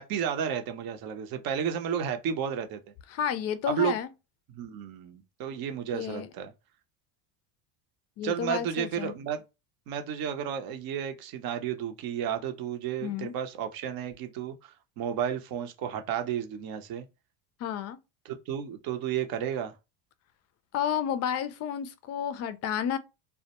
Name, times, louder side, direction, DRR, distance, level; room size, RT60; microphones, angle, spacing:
voice 1, 0.0-2.8 3.7-3.9 4.5-6.5 8.2-9.4 9.9-17.0 18.2-19.7, right 8 dB, 50° right, 0.7 m, -32 dB
voice 2, 3.1-4.1 5.9-6.3 8.2-9.1 13.0-13.3 17.6-18.0 20.7-23.0, left 9 dB, 35° left, 0.4 m, -31 dB
2.1 x 2.1 x 2.9 m
supercardioid pair, 90°, 45 cm